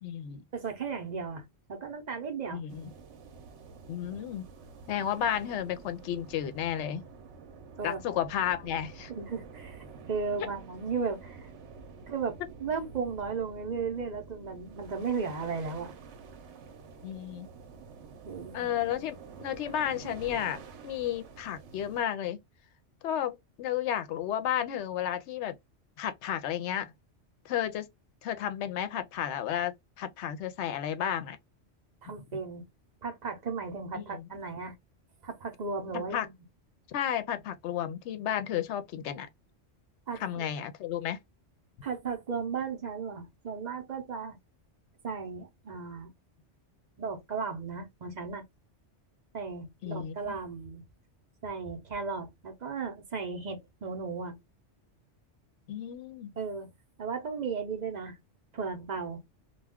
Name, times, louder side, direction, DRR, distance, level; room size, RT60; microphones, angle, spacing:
voice 1, 0.0-0.4 2.5-2.8 3.9-4.5 4.9-7.0 7.8-9.1 17.0-17.5 18.5-22.4 23.0-25.6 26.0-26.9 27.4-27.9 28.2-31.4 33.9-34.2 35.9-36.3 36.9-39.3 40.2-41.2 49.8-50.4 55.7-56.3, left 10 dB, 75° left, 0.8 m, -32 dB
voice 2, 0.5-2.6 7.8-8.0 9.2-11.5 12.1-15.9 18.2-18.7 32.0-32.6 33.0-34.7 35.2-36.3 40.1-40.4 41.8-44.4 45.0-46.1 47.0-48.4 49.3-50.8 51.4-54.4 56.4-56.7 57.0-58.2 58.5-59.2, right 5 dB, 45° right, 0.6 m, -35 dB
sound 1, 2.7-22.0, right 5 dB, 75° right, 0.9 m, -49 dB
2.3 x 2.2 x 3.4 m
omnidirectional pair, 1.2 m